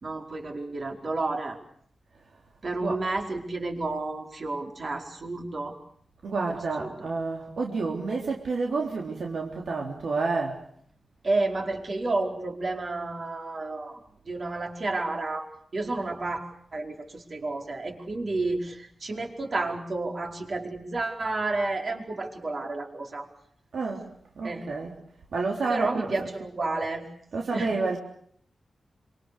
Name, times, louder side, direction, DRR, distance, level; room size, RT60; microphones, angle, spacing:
voice 1, 0.0-1.6 2.6-5.7 6.5-7.1 11.2-14.0 14.3-15.5 15.7-23.3 24.4-24.7 25.7-27.1 27.5-27.7, right 2 dB, 45° right, 2 dB, 4.8 m, -31 dB
voice 2, 6.2-10.6 23.7-24.1 24.4-25.0 25.3-26.4 27.3-28.0, right 3 dB, 70° right, 0 dB, 3.5 m, -29 dB
26.5 x 26.0 x 6.9 m, 0.65 s
wide cardioid pair, 125°, 0 cm